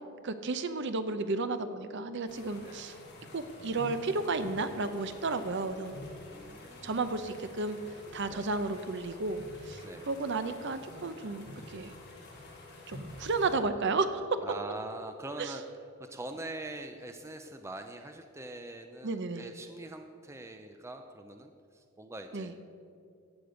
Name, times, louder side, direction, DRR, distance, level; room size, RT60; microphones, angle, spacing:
voice 1, 0.2-3.0 3.3-5.9 6.8-7.8 8.1-11.9 12.9-14.2 15.4-15.5 19.0-19.5 22.3-22.5, right 3 dB, 50° right, 10 dB, 0.6 m, -33 dB
sound 1, 2.3-13.6, left 1 dB, 50° left, 2.9 m, -48 dB
voice 2, 6.3-7.0 8.3-8.5 9.8-10.1 14.4-15.6 16.0-22.5, right 2 dB, 10° right, 6 dB, 0.4 m, -43 dB
14.5 x 8.1 x 5.1 m, 2.5 s
head